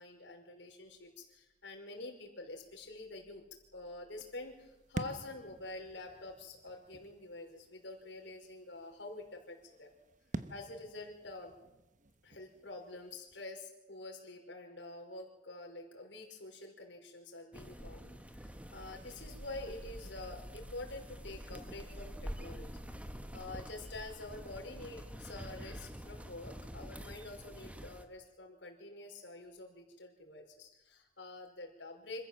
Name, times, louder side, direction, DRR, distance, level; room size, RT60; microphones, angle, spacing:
voice 1, 0.0-3.4 3.7-9.9 10.5-11.5 12.2-22.7 23.3-32.2, left 2 dB, 75° left, 2 dB, 5.2 m, -47 dB
sound 1, 4.2-13.4, right 2 dB, 45° right, 1.1 m, -49 dB
sound 2, 17.5-28.1, equal, 5° right, 1.4 m, -47 dB
26.5 x 14.5 x 7.6 m, 0.99 s
head